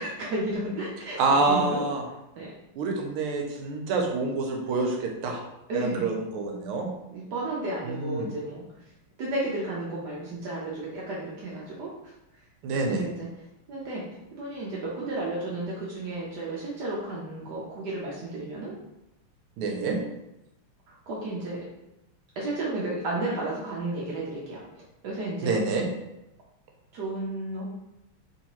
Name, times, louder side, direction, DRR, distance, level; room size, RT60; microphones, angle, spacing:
voice 1, 0.0-1.2 1.5-1.8 2.4-2.5 5.7-6.1 7.1-8.6 9.2-12.1 12.9-13.3 13.7-14.0 14.3-18.7 19.6-20.1 20.9-21.6 22.4-24.6 25.0-25.5 26.9-27.7, right 2 dB, 70° right, -5 dB, 1.0 m, -33 dB
voice 2, 1.2-2.0 2.8-5.4 5.7-6.9 7.8-8.3 12.6-13.0 19.6-20.0 25.4-25.8, right 3 dB, 90° right, 2 dB, 1.5 m, -27 dB
3.7 x 2.7 x 2.9 m, 0.91 s
omnidirectional pair, 2.4 m